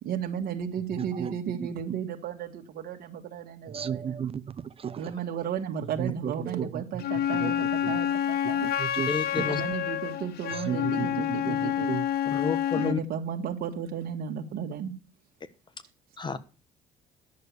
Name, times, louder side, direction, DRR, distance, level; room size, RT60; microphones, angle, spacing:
voice 1, 0.0-4.2 5.0-8.7 9.4-11.9 12.7-14.9, right 8 dB, 65° right, 1.7 m, -34 dB
voice 2, 1.0-1.3 1.6-1.7 3.7-5.1 6.0-6.8 7.4-7.5 7.8-7.9 8.6-9.5 10.5-12.0, right 8 dB, 35° right, 0.8 m, -34 dB
Wind instrument woodwind instrument, 7.0-13.0, left 10 dB, 70° left, 0.8 m, -28 dB
voice 3, 9.1-9.6 12.3-13.0 16.2-16.4, left 5 dB, 25° left, 1.3 m, -30 dB
10.5 x 6.7 x 6.8 m
cardioid pair, 110°, 17 cm